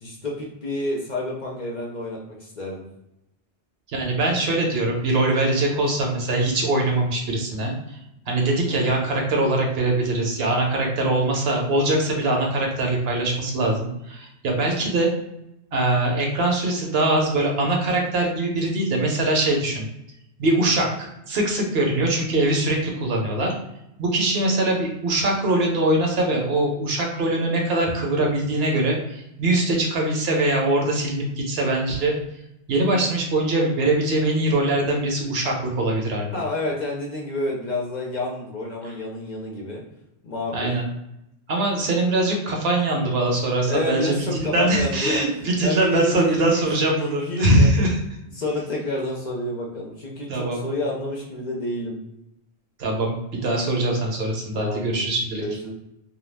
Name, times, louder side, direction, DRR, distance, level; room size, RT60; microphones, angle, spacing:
voice 1, 0.0-2.8 8.6-8.8 36.3-39.8 40.2-40.7 43.7-47.7 48.4-52.1 54.5-55.0 55.4-55.7, left 1 dB, 50° left, -3 dB, 0.6 m, -29 dB
voice 2, 3.9-8.0 8.3-15.1 15.7-19.9 20.4-23.5 24.0-32.1 32.7-36.4 38.8-38.9 40.5-40.9 41.5-48.0 50.3-50.6 52.8-55.4, right 2 dB, 70° right, 0 dB, 0.9 m, -22 dB
2.3 x 2.2 x 3.2 m, 0.84 s
omnidirectional pair, 1.1 m